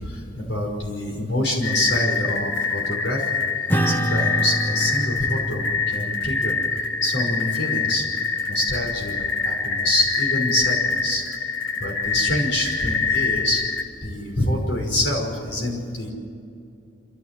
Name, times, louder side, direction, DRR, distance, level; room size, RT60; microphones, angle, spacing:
voice 1, 0.0-3.3 3.9-6.6 7.0-8.0 8.5-11.2 11.8-13.6 14.0-16.1, left 1 dB, 65° left, 0 dB, 5.5 m, -26 dB
sound 1, 1.6-13.8, left 5 dB, 85° left, 1.8 m, -25 dB
Acoustic guitar / Strum, 3.7-8.5, right 1 dB, 10° left, 1.1 m, -29 dB
27.5 x 14.0 x 7.7 m, 2.5 s
head